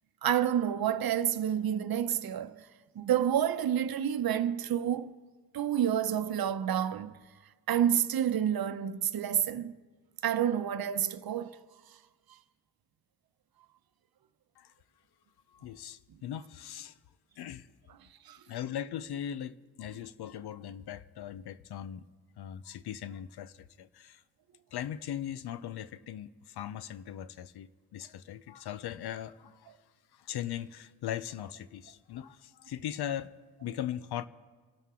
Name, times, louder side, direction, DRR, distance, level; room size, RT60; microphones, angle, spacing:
voice 1, 0.2-2.7 3.0-5.1 5.5-7.2 7.7-9.7 10.2-11.6 18.3-18.4, right 10 dB, 65° right, 0.8 m, -29 dB
voice 2, 15.5-17.0 17.4-17.7 18.5-22.0 22.4-24.2 24.7-29.7 30.1-33.3 33.6-34.3, left 10 dB, 80° left, 0.7 m, -39 dB
27.0 x 12.5 x 3.7 m
cardioid pair, 60°, 39 cm